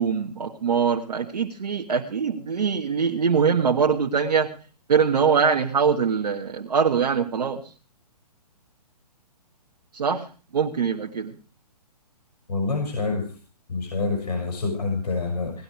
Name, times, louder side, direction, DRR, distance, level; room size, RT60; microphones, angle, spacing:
voice 1, 0.0-4.5 4.9-7.6 9.9-10.3 10.5-11.3, right 6 dB, 70° right, 2 dB, 1.7 m, -23 dB
voice 2, 12.5-13.3 13.7-15.6, left 3 dB, 65° left, 2 dB, 5.8 m, -27 dB
18.5 x 12.5 x 4.7 m, 0.38 s
hypercardioid pair, 135°, 21 cm